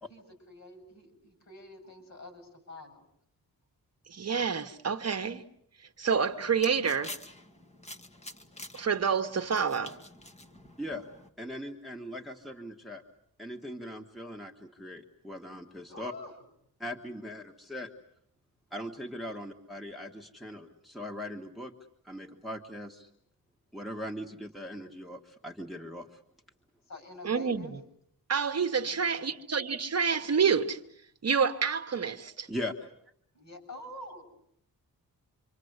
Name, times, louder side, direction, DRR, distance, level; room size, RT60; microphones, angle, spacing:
voice 1, 0.1-3.0 15.8-16.3 19.3-19.4 26.9-27.7 28.8-29.3 33.3-34.2, left 2 dB, 50° left, 6.9 m, -47 dB
voice 2, 4.1-5.4 6.0-7.2 8.7-10.0 27.2-27.8 28.3-30.8 31.2-32.5, right 6 dB, 45° right, 1.2 m, -28 dB
sound 1, 6.1-11.3, left 1 dB, 20° left, 1.5 m, -48 dB
voice 3, 11.4-13.0 13.4-16.1 16.8-17.9 18.7-21.7 22.0-23.1 23.7-26.2 32.5-32.9, left 1 dB, ahead, 1.6 m, -40 dB
27.5 x 25.0 x 8.1 m
wide cardioid pair, 160°, 36 cm